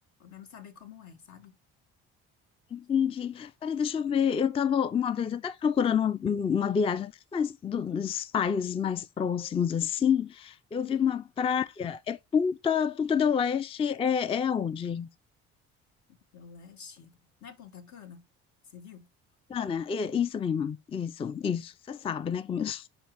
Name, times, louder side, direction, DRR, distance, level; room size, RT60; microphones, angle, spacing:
voice 1, 0.2-1.5 10.8-11.1 16.3-18.2 18.6-19.1, left 8 dB, 70° left, 1.3 m, -48 dB
voice 2, 2.7-15.1 19.5-22.9, left 7 dB, 20° left, 0.3 m, -28 dB
5.2 x 4.4 x 4.6 m
supercardioid pair, 75°, 31 cm